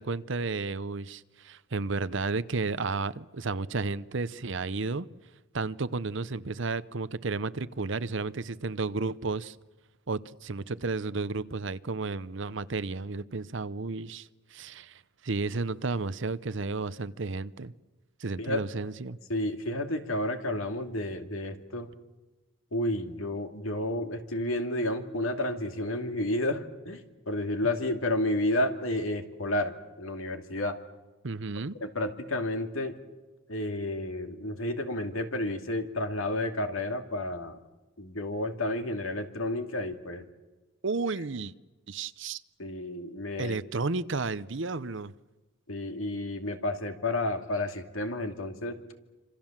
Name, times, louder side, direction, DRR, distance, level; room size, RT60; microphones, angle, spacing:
voice 1, 0.0-5.1 5.5-9.6 10.1-17.7 18.2-19.2 31.2-31.8 40.8-41.5 41.9-42.4 43.4-45.1, right 3 dB, 60° right, 16 dB, 0.8 m, -32 dB
voice 2, 19.3-21.9 22.7-30.8 31.8-33.0 33.5-37.6 38.0-40.2 42.6-43.6 45.7-48.8, left 1 dB, 80° left, 6 dB, 2.5 m, -31 dB
27.0 x 26.5 x 7.4 m, 1.2 s
head